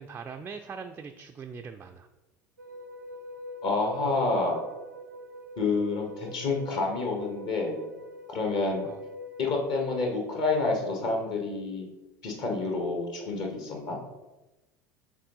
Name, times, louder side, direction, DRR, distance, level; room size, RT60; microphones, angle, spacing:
voice 1, 0.0-2.1 8.8-9.0, right 5 dB, 20° right, 5 dB, 0.3 m, -41 dB
sound 1, 2.6-9.5, left 1 dB, 90° right, 0.5 m, -43 dB
voice 2, 3.6-4.6 5.6-7.9 8.3-8.8 9.4-11.8 12.2-14.0, left 3 dB, 50° left, 1 dB, 1.4 m, -28 dB
6.5 x 3.6 x 4.0 m, 1.1 s
figure-of-eight pair, 70°, 10 cm